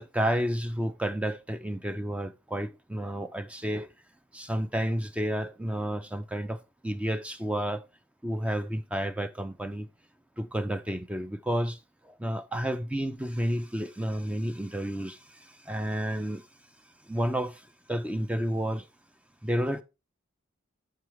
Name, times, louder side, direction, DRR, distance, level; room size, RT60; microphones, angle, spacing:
voice 1, 0.0-3.9 4.3-7.8 8.2-9.9 10.4-11.8 12.0-16.5 17.1-18.9 19.4-19.8, equal, 5° right, 0.3 m, -31 dB
7.5 x 6.0 x 3.1 m
head